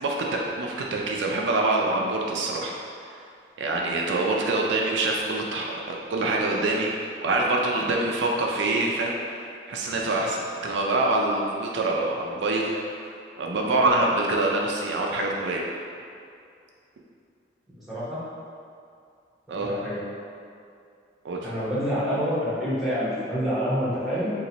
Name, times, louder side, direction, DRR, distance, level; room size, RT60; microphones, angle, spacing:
voice 1, 0.0-2.7 3.1-3.2 3.6-13.0 13.4-15.7 19.5-19.8 21.2-21.5, right 2 dB, 75° right, -1 dB, 0.4 m, -25 dB
Gasp, 6.3-6.9, right 1 dB, 85° left, 1.4 m, -45 dB
voice 2, 17.9-18.2 19.5-20.0 21.4-24.3, equal, ahead, -11 dB, 0.9 m, -27 dB
2.9 x 2.5 x 3.9 m, 2.4 s
head